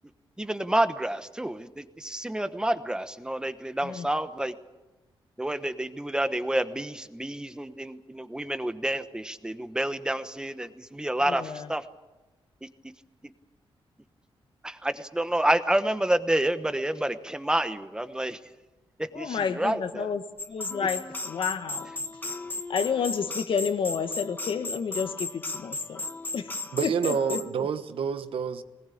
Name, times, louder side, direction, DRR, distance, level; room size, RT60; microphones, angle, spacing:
voice 1, 0.4-4.5 5.4-11.8 12.6-12.7 14.6-18.4 19.1-20.1, right 1 dB, 10° right, 1.1 m, -29 dB
voice 2, 11.3-11.7 19.1-21.9 22.7-26.0 26.3-27.4, left 6 dB, 65° left, 1.6 m, -30 dB
sound 1, 20.4-27.5, left 2 dB, 20° left, 1.2 m, -35 dB
voice 3, 26.7-28.6, right 7 dB, 70° right, 1.2 m, -28 dB
21.5 x 19.5 x 8.5 m
wide cardioid pair, 145°, 10 cm